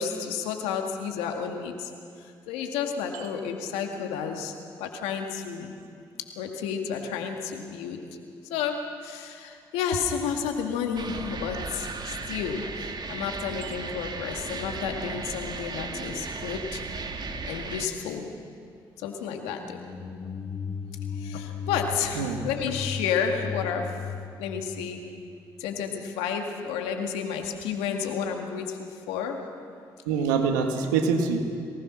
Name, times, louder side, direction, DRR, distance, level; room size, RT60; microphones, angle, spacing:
voice 1, 0.0-1.9 2.2-5.8 6.3-8.1 8.5-16.8 17.4-18.3 19.0-19.8 21.1-24.0 24.4-25.1 25.6-29.5, left 7 dB, 80° left, 4 dB, 2.1 m, -31 dB
sound 1, 11.0-17.9, right 4 dB, 45° right, 2.0 m, -36 dB
sound 2, 19.6-25.6, left 6 dB, 40° left, 2.0 m, -36 dB
voice 2, 30.0-31.4, right 5 dB, 90° right, 5 dB, 1.6 m, -25 dB
24.0 x 19.0 x 6.3 m, 2.3 s
hypercardioid pair, 50°, 10 cm